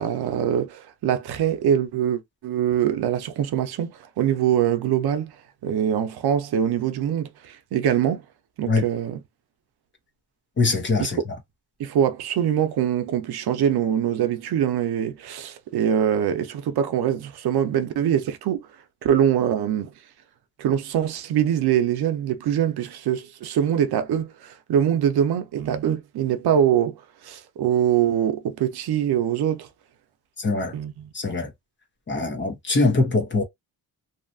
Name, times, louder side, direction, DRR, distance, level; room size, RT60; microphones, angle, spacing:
voice 1, 0.0-5.3 5.6-8.2 8.6-9.2 11.8-18.7 19.0-19.9 20.6-26.9 27.2-29.7 30.7-31.1, right 9 dB, 85° right, 0.7 m, -23 dB
voice 2, 10.6-11.2 30.4-30.7 31.1-31.5 32.1-33.4, left 3 dB, 30° left, 1.0 m, -22 dB
2.9 x 2.4 x 2.6 m
wide cardioid pair, 170°, 37 cm